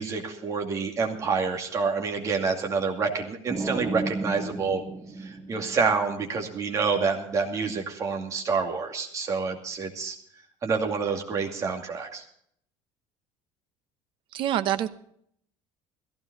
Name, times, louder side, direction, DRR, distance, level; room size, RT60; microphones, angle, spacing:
voice 1, 0.0-4.8 5.2-10.2 10.6-12.2, right 5 dB, 25° right, 3 dB, 2.4 m, -28 dB
sound 1, 3.5-6.3, right 3 dB, 10° right, 1.2 m, -33 dB
voice 2, 14.3-14.9, right 11 dB, 45° right, 12 dB, 0.9 m, -25 dB
16.0 x 15.5 x 4.0 m, 0.66 s
cardioid pair, 175°, 12 cm